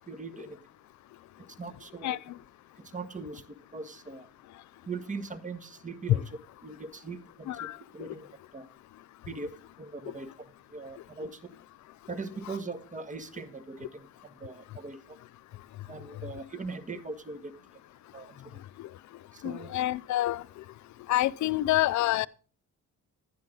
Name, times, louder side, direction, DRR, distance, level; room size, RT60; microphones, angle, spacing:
voice 1, 0.1-0.6 1.6-2.2 2.8-4.3 4.9-6.3 6.6-7.7 7.9-8.3 8.5-8.7 9.3-11.4 12.1-15.2 15.9-17.5 18.1-18.6 19.3-19.7, right 3 dB, 25° right, 1.6 m, -40 dB
voice 2, 7.5-7.8 19.4-20.4 21.1-22.3, left 15 dB, 70° left, 0.5 m, -27 dB
11.5 x 10.5 x 3.8 m
cardioid pair, 90°, 30 cm